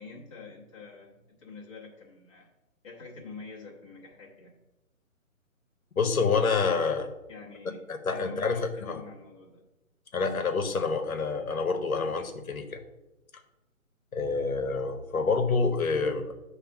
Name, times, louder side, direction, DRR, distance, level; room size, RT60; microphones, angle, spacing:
voice 1, 0.0-2.5 2.8-4.6 7.3-9.6, left 4 dB, 20° left, -5 dB, 1.2 m, -47 dB
voice 2, 6.0-7.1 8.0-9.0 10.1-12.8 14.1-16.3, left 4 dB, 80° left, 6 dB, 1.1 m, -27 dB
7.7 x 3.3 x 5.9 m, 1.0 s
hypercardioid pair, 165°, 42 cm